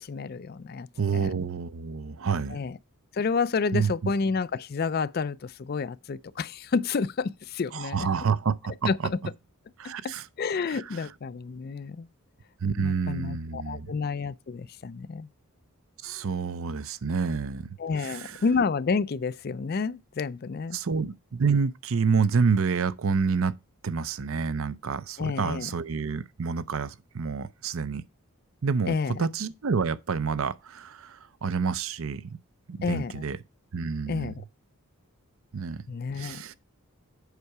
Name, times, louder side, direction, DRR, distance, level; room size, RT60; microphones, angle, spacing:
voice 1, 0.0-0.9 1.1-1.3 2.5-2.8 3.1-8.1 8.9-9.2 10.4-12.1 12.8-15.3 17.8-20.8 25.2-25.8 28.9-29.3 32.8-33.2 34.1-34.4 35.9-36.5, left 5 dB, 45° left, 0.4 m, -30 dB
voice 2, 1.0-2.6 3.7-4.1 7.7-8.9 9.8-10.2 10.7-11.0 12.6-13.9 16.0-18.4 20.7-23.5 23.8-28.0 28.6-32.4 32.7-33.4 33.7-34.3 35.5-35.8 36.1-36.5, right 5 dB, 65° right, 0.5 m, -28 dB
8.1 x 5.6 x 4.7 m
head